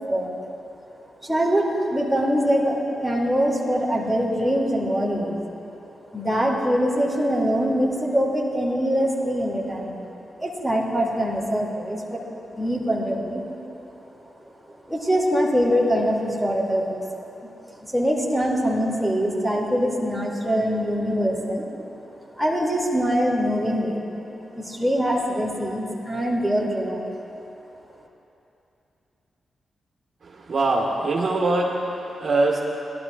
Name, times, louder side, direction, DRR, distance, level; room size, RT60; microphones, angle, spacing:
voice 1, 1.2-5.4 6.1-10.0 10.4-13.4 14.7-17.1 17.4-17.5 17.8-21.7 22.3-24.3 24.6-27.2, equal, ahead, -4 dB, 2.6 m, -23 dB
voice 2, 30.2-32.6, right 2 dB, 55° right, -2 dB, 1.5 m, -23 dB
18.0 x 12.0 x 2.5 m, 2.8 s
supercardioid pair, 50°, 0 cm